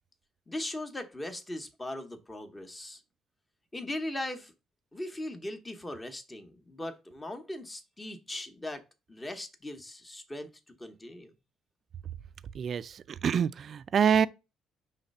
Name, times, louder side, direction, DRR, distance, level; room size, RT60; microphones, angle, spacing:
voice 1, 0.5-3.0 3.7-4.5 4.9-11.3, left 1 dB, 15° left, 1.0 m, -39 dB
voice 2, 12.5-14.3, right 7 dB, 45° right, 0.4 m, -26 dB
5.8 x 3.2 x 5.4 m
cardioid pair, 135°, 0 cm